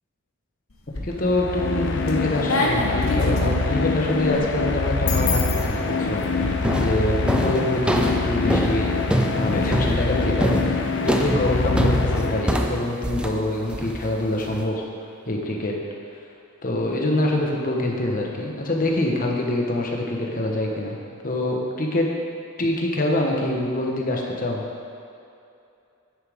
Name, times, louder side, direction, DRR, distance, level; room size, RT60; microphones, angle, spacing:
sound 1, 0.7-1.4 1.8-6.5, left 2 dB, 70° left, 1.2 m, -28 dB
voice 1, 1.0-8.9 9.3-14.8 15.3-15.7 16.6-21.0 21.2-22.1 22.6-24.6, left 1 dB, 40° left, -1 dB, 1.2 m, -25 dB
sound 2, 1.1-12.9, left 3 dB, 55° left, 0.7 m, -24 dB
sound 3, 5.8-6.1 6.6-14.6, right 1 dB, 5° right, 0.4 m, -26 dB
9.7 x 9.6 x 3.6 m, 2.6 s
head